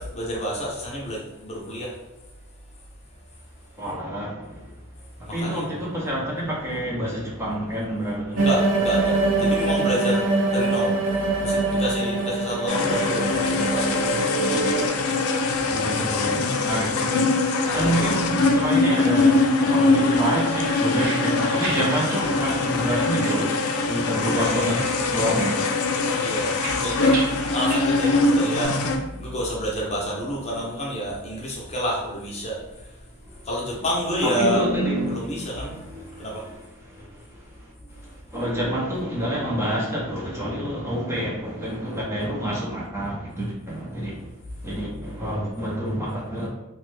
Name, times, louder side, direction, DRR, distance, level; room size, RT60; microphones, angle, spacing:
voice 1, 0.0-2.0 5.2-5.7 8.3-14.8 15.3-15.4 15.7-15.8 17.6-18.2 25.9-34.6 35.0-35.9 36.2-36.7 37.9-38.2, equal, 30° left, -3 dB, 0.7 m, -30 dB
voice 2, 3.8-4.6 5.3-8.4 12.7-13.0 15.7-17.2 17.7-23.5 23.9-24.8 25.1-25.6 34.2-36.1 37.0-37.1 38.3-44.2 44.6-46.5, right 1 dB, 10° right, -5 dB, 0.5 m, -27 dB
sound 1, 8.4-14.9, right 3 dB, 60° right, 0.5 m, -23 dB
sound 2, 12.7-29.0, left 3 dB, 75° left, 0.4 m, -22 dB
sound 3, 20.4-24.0 24.2-25.1 25.4-28.6, right 2 dB, 80° right, 1.0 m, -37 dB
3.0 x 2.1 x 3.1 m, 0.96 s
head